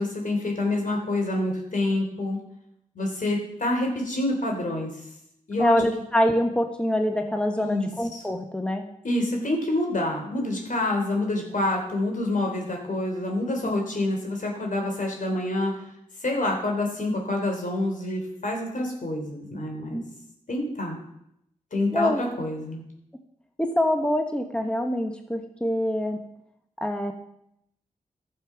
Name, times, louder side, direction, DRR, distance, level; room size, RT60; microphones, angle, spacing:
voice 1, 0.0-2.4 2.9-4.9 5.5-5.8 7.6-8.2 9.0-15.8 16.2-20.0 20.5-21.0 21.7-22.8, left 1 dB, 65° left, 1 dB, 3.4 m, -27 dB
voice 2, 5.6-8.8 13.6-13.7 19.9-20.0 21.9-22.2 23.6-26.2 26.8-27.1, left 1 dB, 5° left, 4 dB, 1.2 m, -25 dB
13.0 x 6.8 x 5.8 m, 0.77 s
cardioid pair, 50°, 14 cm